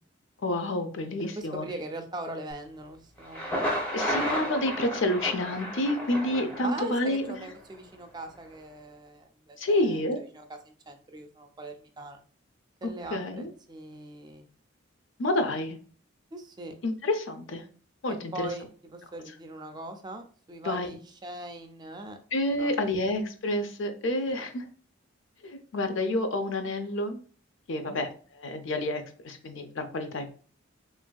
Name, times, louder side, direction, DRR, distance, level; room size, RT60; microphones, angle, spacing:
voice 1, 0.4-1.6 3.9-7.2 9.6-10.2 13.1-13.5 15.2-15.8 16.8-17.6 18.0-18.5 20.6-21.0 22.3-24.6 25.4-27.2 27.7-28.1 28.3-30.3, left 1 dB, 70° left, 7 dB, 0.5 m, -29 dB
voice 2, 1.2-3.5 6.6-12.2 12.8-14.5 16.3-16.7 18.1-22.2 22.6-23.0 27.8-28.0, right 2 dB, 20° right, 5 dB, 0.3 m, -41 dB
Thunder, 3.2-7.2, equal, 5° left, 0.6 m, -32 dB
3.0 x 2.6 x 2.2 m, 0.42 s
head